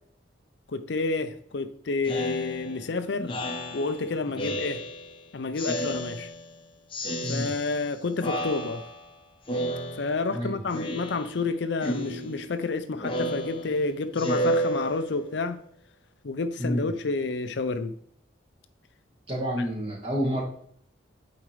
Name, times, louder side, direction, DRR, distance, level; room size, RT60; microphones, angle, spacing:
voice 1, 0.7-3.3 3.7-4.8 5.3-6.3 7.3-8.8 10.0-15.6 16.2-17.9, left 3 dB, 65° left, 0.5 m, -29 dB
Speech synthesizer, 2.0-5.2 5.6-6.6 6.9-7.9 8.2-9.1 9.5-10.4 10.7-11.5 11.8-15.4, right 1 dB, 25° left, 0.8 m, -32 dB
voice 2, 19.3-20.4, equal, 30° right, 1.6 m, -29 dB
8.6 x 4.3 x 3.3 m
head